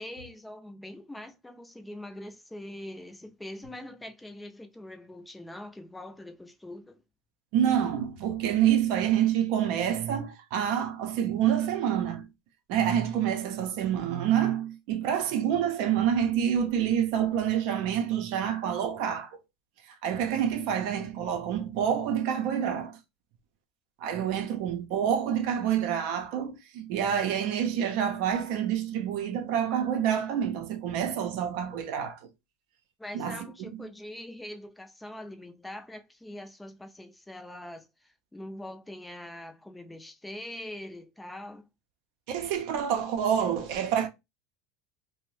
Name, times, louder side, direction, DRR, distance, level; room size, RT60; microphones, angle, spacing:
voice 1, 0.0-7.0 33.0-41.7, left 1 dB, 5° left, 0.5 m, -43 dB
voice 2, 7.5-12.2 12.7-19.4 20.0-23.0 24.0-32.2 33.1-33.4 42.3-44.1, right 9 dB, 65° right, 0.6 m, -27 dB
2.6 x 2.1 x 3.1 m
supercardioid pair, 115°, 0 cm